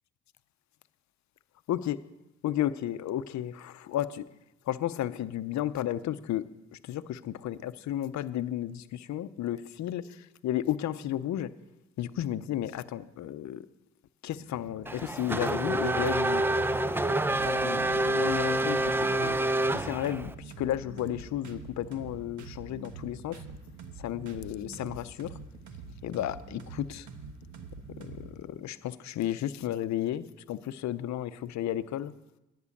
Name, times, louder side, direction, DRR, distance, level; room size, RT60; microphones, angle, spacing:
voice 1, 1.7-2.0 2.4-4.2 4.7-6.4 6.7-11.5 12.0-13.6 14.2-16.4 17.4-19.4 19.7-23.4 24.0-25.3 26.0-27.1 28.0-32.1, left 12 dB, 65° left, 14 dB, 0.6 m, -33 dB
sound 1, 14.4-28.3, right 4 dB, 70° right, 1.3 m, -46 dB
Race car auto racing / Accelerating revving vroom, 14.9-20.3, right 1 dB, 10° right, 0.4 m, -27 dB
11.0 x 6.2 x 8.5 m, 0.96 s
cardioid pair, 90°, 30 cm